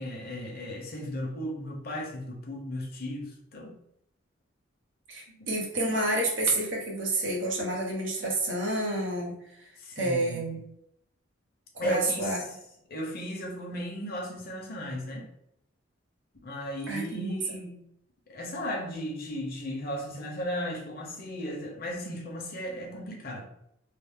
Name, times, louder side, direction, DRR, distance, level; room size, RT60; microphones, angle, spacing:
voice 1, 0.0-3.7 5.3-5.5 9.8-10.4 11.8-12.4 12.9-15.3 16.4-17.8 18.3-23.5, equal, 50° left, 0 dB, 0.8 m, -35 dB
voice 2, 5.1-9.7 10.0-10.6 11.7-12.4 16.9-17.6, right 2 dB, 85° right, -2 dB, 1.0 m, -29 dB
3.2 x 2.0 x 3.5 m, 0.76 s
head